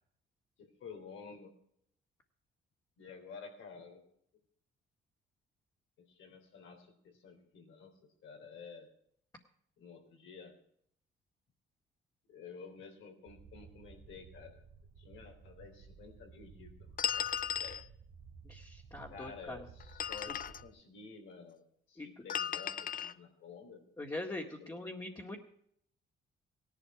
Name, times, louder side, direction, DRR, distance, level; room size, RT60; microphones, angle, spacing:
voice 1, 0.6-1.5 3.0-4.0 6.0-8.9 9.8-10.6 12.3-14.6 15.0-17.8 19.1-23.9 24.6-24.8, left 5 dB, 80° left, 4 dB, 3.5 m, -52 dB
sound 1, 13.3-20.7, right 5 dB, 80° right, 1.7 m, -55 dB
sound 2, 17.0-17.8 19.8-20.6 22.3-23.1, left 8 dB, 45° left, 0.6 m, -36 dB
voice 2, 18.4-19.7 22.0-22.1 24.0-25.4, left 2 dB, 20° left, -2 dB, 1.9 m, -42 dB
17.0 x 11.0 x 4.8 m, 0.68 s
cardioid pair, 90°, 20 cm